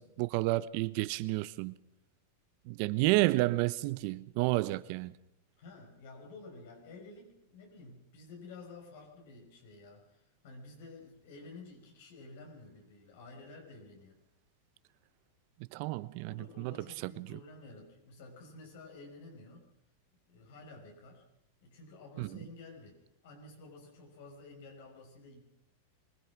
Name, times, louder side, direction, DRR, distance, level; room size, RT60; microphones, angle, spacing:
voice 1, 0.0-1.7 2.7-5.1 15.7-16.7 17.2-17.3 22.2-22.3, right 20 dB, 55° right, 1.0 m, -30 dB
voice 2, 5.6-14.2 16.3-19.7 20.3-21.2 21.6-25.4, left 3 dB, 70° left, 5.9 m, -51 dB
24.5 x 19.0 x 6.2 m
hypercardioid pair, 120°, 0 cm